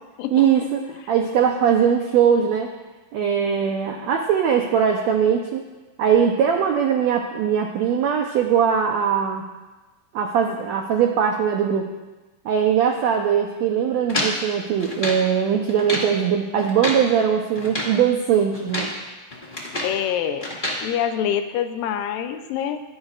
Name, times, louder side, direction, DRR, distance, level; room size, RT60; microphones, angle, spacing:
voice 1, 0.3-2.7 3.1-5.6 6.0-9.5 10.1-11.9 12.4-18.9, right 8 dB, 80° right, 2 dB, 1.5 m, -20 dB
sound 1, 14.1-15.3 15.7-16.1 16.6-17.1 17.5-18.0 18.5-19.0 19.3-20.0 20.4-20.8, left 1 dB, 20° left, 1.4 m, -28 dB
voice 2, 19.8-20.5 20.8-22.8, left 9 dB, 80° left, 8 dB, 2.3 m, -25 dB
24.0 x 11.0 x 2.5 m, 1.2 s
omnidirectional pair, 4.2 m